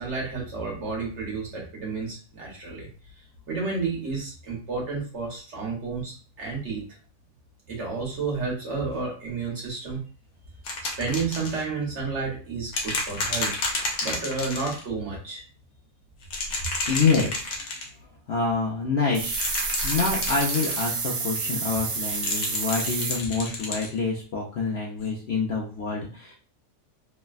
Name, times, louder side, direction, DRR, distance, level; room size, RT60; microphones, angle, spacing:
voice 1, 0.0-2.9 3.5-6.8 7.7-10.0 11.0-13.5 14.0-15.4, right 4 dB, 55° right, -3 dB, 1.2 m, -31 dB
sound 1, 10.6-11.6 12.7-14.8 16.2-17.9 19.2-20.9 22.0-23.9 25.0-25.1, left 3 dB, 85° left, 1.3 m, -30 dB
voice 2, 16.9-17.5 18.3-19.4 19.8-26.3, left 4 dB, 65° left, -4 dB, 0.6 m, -26 dB
sound 2, 19.1-23.2, right 4 dB, 85° right, 1.2 m, -29 dB
3.1 x 2.1 x 2.4 m, 0.39 s
omnidirectional pair, 1.6 m